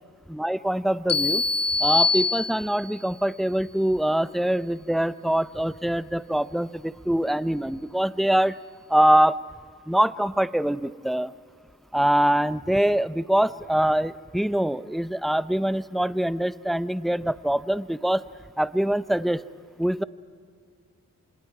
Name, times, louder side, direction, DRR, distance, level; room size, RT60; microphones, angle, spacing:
voice 1, 0.3-1.4 1.8-8.6 8.9-9.4 9.9-11.3 11.9-18.2 18.6-19.4 19.8-20.0, right 1 dB, ahead, 15 dB, 0.6 m, -24 dB
sound 1, 1.1-3.0, left 3 dB, 85° left, 2.1 m, -24 dB
28.5 x 26.5 x 4.8 m, 2.1 s
cardioid pair, 50°, 33 cm